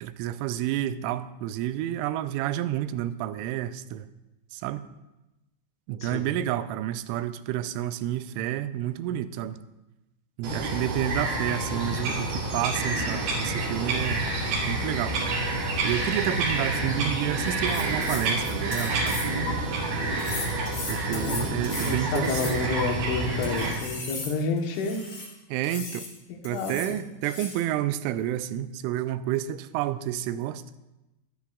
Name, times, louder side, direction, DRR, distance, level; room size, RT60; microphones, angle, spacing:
voice 1, 0.0-4.1 4.5-4.8 5.9-9.6 10.4-14.2 14.6-15.3 15.8-19.2 20.9-22.6 25.5-26.1 26.4-30.6, right 12 dB, 90° right, 13 dB, 3.0 m, -30 dB
Bird vocalization bird call bird song, 10.4-23.7, right 2 dB, 55° right, 3.9 m, -28 dB
sound 1, 15.1-22.6, right 10 dB, 70° right, 2.4 m, -42 dB
sound 2, 17.5-19.5 20.2-22.8 23.4-25.3 25.6-26.1 26.4-26.9 27.2-27.7, left 4 dB, 45° left, 2.0 m, -37 dB
voice 2, 21.1-21.4 21.9-25.0 26.3-26.7, left 4 dB, 85° left, 3 dB, 3.7 m, -30 dB
24.0 x 10.5 x 2.4 m, 1.0 s
omnidirectional pair, 5.4 m